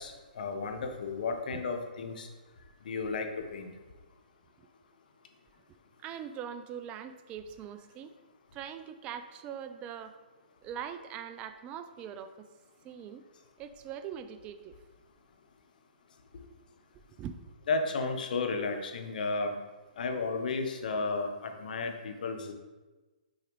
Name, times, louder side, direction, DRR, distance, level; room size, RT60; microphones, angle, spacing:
voice 1, 0.0-2.3 2.8-3.7 17.7-19.6 20.0-22.5, left 3 dB, 65° left, 5 dB, 0.9 m, -33 dB
voice 2, 5.7-8.1 8.5-10.2 10.6-12.5 12.8-13.2 13.6-14.8 17.2-17.4, right 8 dB, 25° right, 10 dB, 0.4 m, -42 dB
6.3 x 4.9 x 3.1 m, 1.2 s
hypercardioid pair, 135°, 5 cm